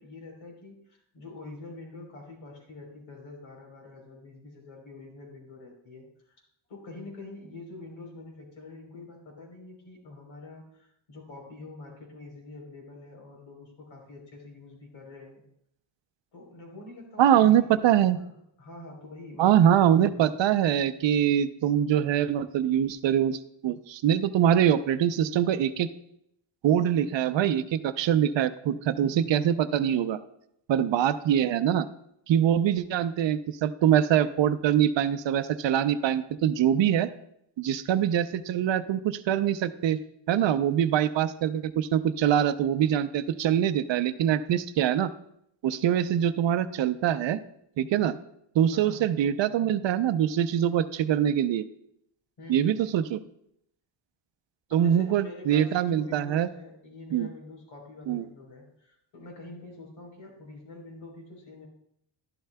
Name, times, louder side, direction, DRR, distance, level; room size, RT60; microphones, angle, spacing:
voice 1, 0.0-6.4 6.7-15.4 16.3-17.8 18.1-20.4 48.7-49.0 52.4-52.8 54.7-61.7, left 2 dB, 80° left, -1 dB, 3.8 m, -46 dB
voice 2, 17.2-18.2 19.4-25.9 26.6-30.2 30.7-31.9 32.3-37.1 37.6-40.0 40.3-45.1 45.6-47.4 47.8-48.2 48.5-51.6 52.5-53.2 54.7-56.5 57.1-57.3 58.1-58.2, right 10 dB, 65° right, 12 dB, 0.6 m, -24 dB
12.0 x 11.5 x 2.2 m, 0.75 s
cardioid pair, 125°, 47 cm